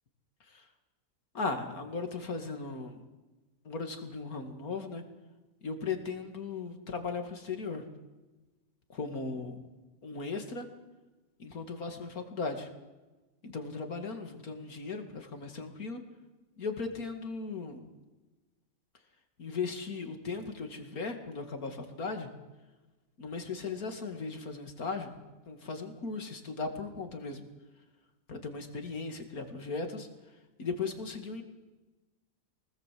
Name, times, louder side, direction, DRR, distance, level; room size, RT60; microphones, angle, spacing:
voice 1, 1.3-3.0 3.6-5.0 5.6-7.8 8.9-9.7 10.0-10.7 11.4-12.7 13.4-16.0 16.6-17.9 19.4-22.3 23.2-25.2 25.5-27.4 28.3-30.1 30.6-31.4, left 4 dB, 90° left, 6 dB, 2.8 m, -37 dB
24.5 x 19.5 x 7.7 m, 1.2 s
omnidirectional pair, 1.5 m